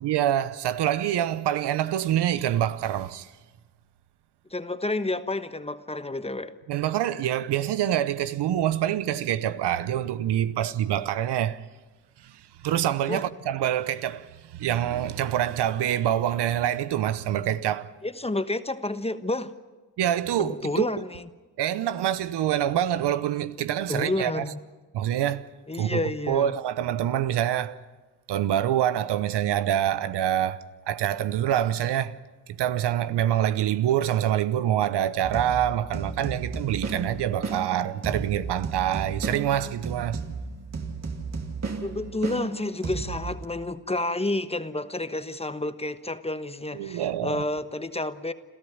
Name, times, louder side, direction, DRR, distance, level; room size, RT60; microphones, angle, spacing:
voice 1, 0.0-3.3 6.7-11.6 12.2-17.9 20.0-20.9 21.6-24.4 24.9-25.5 25.8-26.0 26.3-27.8 28.3-32.2 32.5-40.2 46.7-47.4, right 11 dB, 70° right, 0.9 m, -26 dB
voice 2, 4.5-6.5 13.1-13.3 18.0-19.5 20.4-21.3 23.9-24.6 25.7-26.5 41.8-48.3, left 2 dB, 15° left, 1.2 m, -30 dB
sound 1, 35.2-43.5, right 4 dB, 40° right, 2.3 m, -34 dB
27.0 x 14.0 x 9.6 m
supercardioid pair, 65°, 42 cm